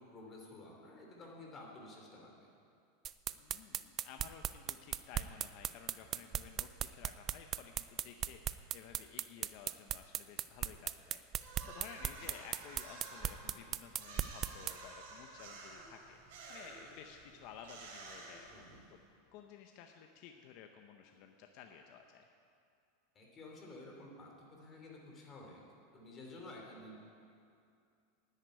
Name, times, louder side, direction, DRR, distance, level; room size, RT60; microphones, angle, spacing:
voice 1, 0.0-2.5 18.5-18.8 23.1-25.6 25.9-27.0, left 2 dB, 25° left, -1 dB, 2.9 m, -52 dB
sound 1, 3.0-14.7, right 11 dB, 30° right, 0.4 m, -37 dB
voice 2, 3.4-16.2 16.5-19.0 19.3-22.3, left 8 dB, 50° left, 4 dB, 0.8 m, -54 dB
sound 2, 11.4-19.0, right 3 dB, 70° right, 2.9 m, -52 dB
10.5 x 8.1 x 9.5 m, 2.4 s
supercardioid pair, 145°, 0 cm